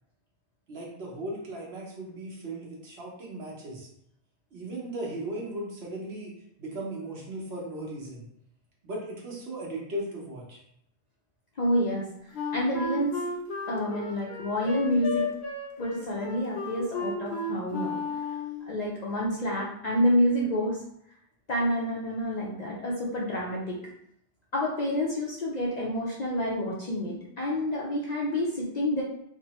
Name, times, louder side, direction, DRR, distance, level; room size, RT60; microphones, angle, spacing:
voice 1, 0.7-3.9 4.5-6.3 6.6-8.2 8.8-10.6, right 1 dB, 70° right, -3 dB, 1.1 m, -37 dB
voice 2, 11.6-12.1 12.5-13.2 13.7-15.3 15.8-18.0 18.7-20.8 21.5-23.8 24.5-29.0, equal, 55° left, -4 dB, 0.5 m, -28 dB
Wind instrument woodwind instrument, 12.3-18.6, left 3 dB, 70° left, 0.8 m, -33 dB
3.1 x 2.0 x 2.9 m, 0.74 s
omnidirectional pair, 1.1 m